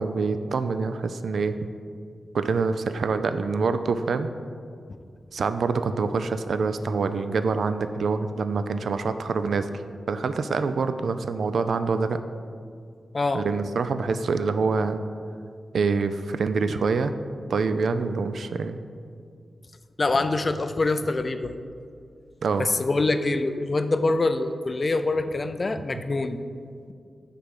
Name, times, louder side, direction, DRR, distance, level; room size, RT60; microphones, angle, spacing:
voice 1, 0.0-1.6 2.3-4.3 5.3-12.2 13.3-15.0 15.7-17.1 17.5-18.8 22.4-22.7, right 4 dB, 70° right, 10 dB, 0.3 m, -26 dB
voice 2, 20.0-21.5 22.6-26.4, left 2 dB, 35° left, 10 dB, 0.3 m, -25 dB
6.5 x 3.8 x 6.3 m, 2.3 s
wide cardioid pair, 145°, 0 cm